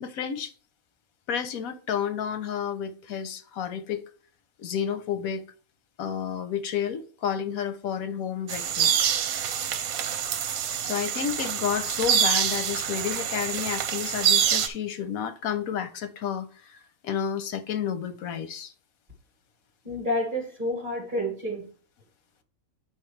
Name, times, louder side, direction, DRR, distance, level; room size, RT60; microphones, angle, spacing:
voice 1, 0.0-0.5 1.3-4.0 4.6-5.5 6.0-8.9 10.8-16.8 17.0-18.7, left 8 dB, 90° left, 1.2 m, -31 dB
sound 1, 8.5-14.7, right 8 dB, 80° right, 1.2 m, -26 dB
voice 2, 19.8-21.7, left 1 dB, 35° right, 2.1 m, -29 dB
8.6 x 5.7 x 3.1 m
omnidirectional pair, 1.4 m